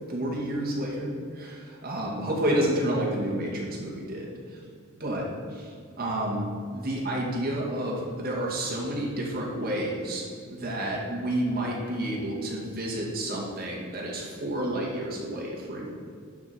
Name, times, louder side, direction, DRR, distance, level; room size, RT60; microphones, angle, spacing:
voice 1, 0.1-4.3 5.0-5.3 5.5-5.7 6.0-6.5 6.7-10.2 10.5-15.9, right 1 dB, 45° right, -3 dB, 2.2 m, -30 dB
11.5 x 4.7 x 5.2 m, 2.2 s
head